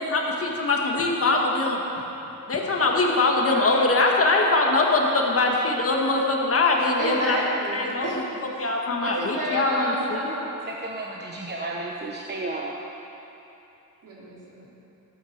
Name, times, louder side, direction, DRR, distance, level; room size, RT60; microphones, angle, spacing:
voice 1, 0.0-1.8 2.5-7.4 7.7-8.2 8.6-10.3, left 2 dB, 45° left, 0 dB, 1.8 m, -22 dB
voice 2, 7.0-8.2 8.5-8.7 9.0-10.4 14.0-14.7, right 1 dB, 75° right, -5 dB, 3.6 m, -31 dB
voice 3, 10.7-12.8, right 2 dB, 35° right, -1 dB, 0.9 m, -33 dB
16.0 x 9.4 x 6.6 m, 3.0 s
wide cardioid pair, 145°, 32 cm